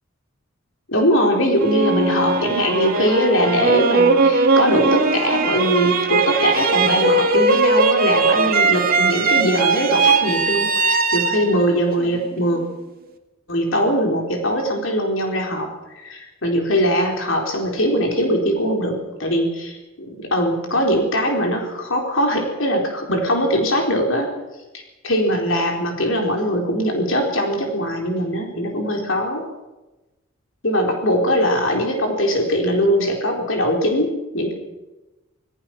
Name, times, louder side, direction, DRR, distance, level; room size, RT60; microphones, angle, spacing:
voice 1, 0.9-12.6 13.5-18.9 19.2-24.3 25.0-29.5 30.6-34.5, equal, 70° left, 1 dB, 4.2 m, -21 dB
sound 1, 1.6-12.6, right 4 dB, 50° right, 2.3 m, -19 dB
26.5 x 18.0 x 6.0 m, 1.1 s
head